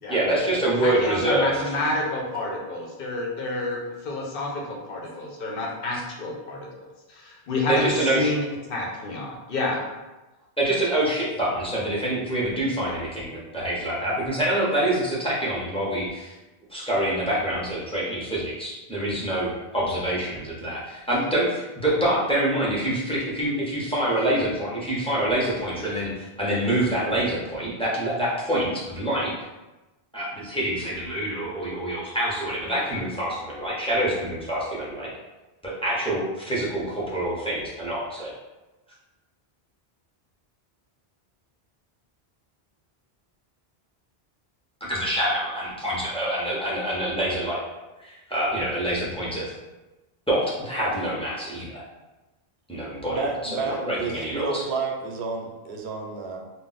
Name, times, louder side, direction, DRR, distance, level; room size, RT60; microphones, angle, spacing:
voice 1, 0.1-1.6 7.7-8.3 10.6-16.3 16.7-29.3 30.1-35.1 35.6-38.3 44.8-47.6 48.0-49.5 50.3-51.8 52.7-54.6, right 1 dB, 5° left, -7 dB, 0.6 m, -26 dB
voice 2, 0.8-6.6 7.1-8.4 8.7-9.8, left 2 dB, 65° left, -2 dB, 0.8 m, -29 dB
voice 3, 53.1-56.4, right 4 dB, 85° right, 2 dB, 0.8 m, -30 dB
2.4 x 2.0 x 3.8 m, 1.1 s
omnidirectional pair, 1.1 m